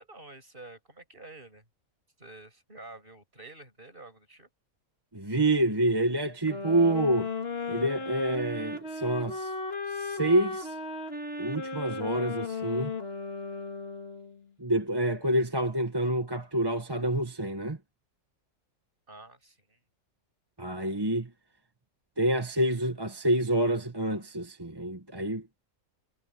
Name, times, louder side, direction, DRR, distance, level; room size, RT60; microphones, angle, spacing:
voice 1, 0.0-1.7 2.2-4.5 19.1-19.8, right 2 dB, 40° right, 6.9 m, -49 dB
voice 2, 5.1-7.3 7.7-9.5 9.9-10.8 11.4-12.9 14.6-17.8 20.6-21.3 22.2-25.4, right 1 dB, 20° right, 1.4 m, -27 dB
sound 1, 6.5-14.4, left 3 dB, 45° left, 2.7 m, -35 dB
omnidirectional pair, 1.5 m